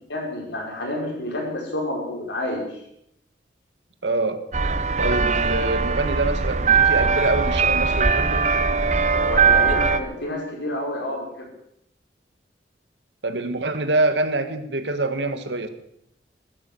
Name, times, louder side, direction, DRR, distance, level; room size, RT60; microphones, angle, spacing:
voice 1, 0.1-2.8 9.1-11.5, left 1 dB, 90° left, 0 dB, 5.6 m, -29 dB
voice 2, 4.0-4.4 5.0-8.5 13.2-15.7, right 2 dB, 85° right, 9 dB, 1.7 m, -25 dB
sound 1, 4.5-10.0, right 5 dB, 40° right, 0.8 m, -20 dB
16.5 x 12.5 x 7.0 m, 0.75 s
head